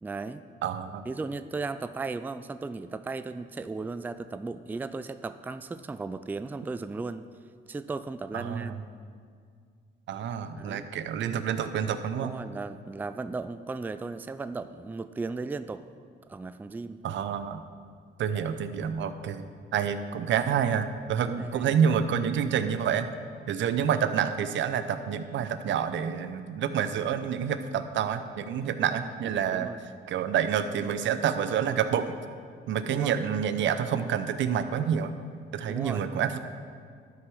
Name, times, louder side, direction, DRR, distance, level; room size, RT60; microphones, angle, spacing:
voice 1, 0.0-0.4 1.1-7.3 7.7-8.7 10.6-10.9 12.2-15.8 16.3-17.0 18.3-18.7 21.4-22.3 29.5-29.8 32.8-33.2 35.7-36.1, right 3 dB, 10° right, 12 dB, 0.3 m, -36 dB
voice 2, 0.6-1.0 8.3-8.8 10.1-12.3 17.0-17.6 18.2-19.5 19.7-23.1 23.5-29.7 30.1-32.1 32.7-35.1 35.5-36.4, right 8 dB, 70° right, 10 dB, 0.6 m, -28 dB
12.0 x 4.8 x 6.1 m, 2.1 s
cardioid pair, 90°, 20 cm